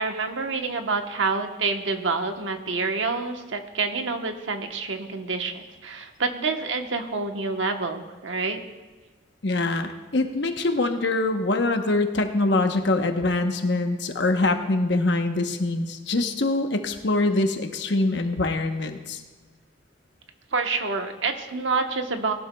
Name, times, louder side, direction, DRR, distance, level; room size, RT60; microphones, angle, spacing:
voice 1, 0.0-8.6 20.5-22.3, right 4 dB, 80° right, 5 dB, 1.1 m, -27 dB
voice 2, 9.4-19.2, left 2 dB, 65° left, 6 dB, 1.0 m, -24 dB
19.5 x 11.5 x 2.3 m, 1.3 s
head